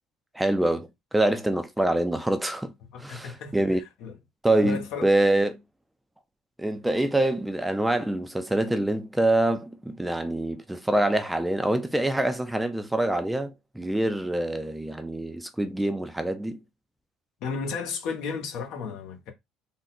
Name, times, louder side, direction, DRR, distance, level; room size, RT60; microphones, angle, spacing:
voice 1, 0.3-2.7 3.0-3.8 4.4-5.6 6.6-16.6, right 1 dB, 5° right, 0.5 m, -25 dB
voice 2, 2.9-4.2 4.6-5.1 17.4-19.3, left 5 dB, 70° left, 1.1 m, -34 dB
3.7 x 2.2 x 4.1 m
cardioid pair, 125°, 0 cm